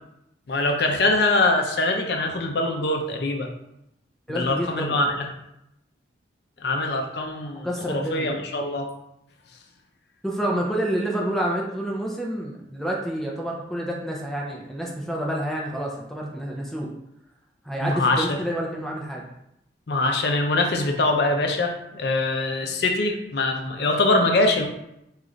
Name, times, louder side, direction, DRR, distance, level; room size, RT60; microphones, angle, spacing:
voice 1, 0.5-3.5 4.3-5.3 6.6-8.9 17.8-18.4 19.9-24.7, left 2 dB, 60° left, 3 dB, 0.5 m, -23 dB
voice 2, 4.3-5.0 7.6-8.4 10.2-16.9 17.6-19.2, right 1 dB, ahead, -2 dB, 0.4 m, -28 dB
3.1 x 2.4 x 3.8 m, 0.80 s
head